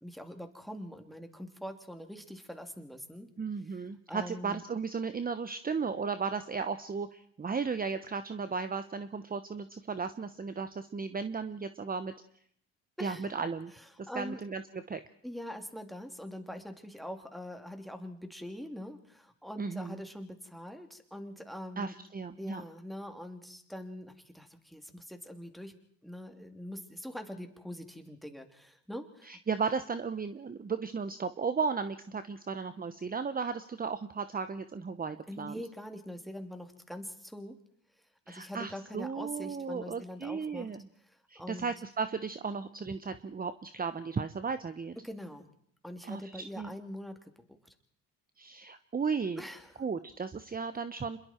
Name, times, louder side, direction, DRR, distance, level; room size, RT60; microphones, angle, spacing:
voice 1, 0.0-3.3 3.7-3.8 4.1-4.6 13.0-13.3 13.7-14.4 15.2-21.9 22.4-25.7 26.0-29.4 35.3-37.6 38.3-40.7 41.3-41.7 45.0-45.5 45.8-47.6 49.4-49.8, equal, ahead, 5 dB, 3.1 m, -43 dB
voice 2, 3.4-12.1 13.0-13.7 14.0-15.0 19.6-20.0 21.8-22.6 29.3-35.6 38.3-40.9 41.3-45.0 46.0-46.7 48.4-49.4 49.8-51.2, right 5 dB, 25° right, 11 dB, 1.0 m, -35 dB
27.0 x 22.0 x 4.5 m, 0.66 s
supercardioid pair, 80°, 35 cm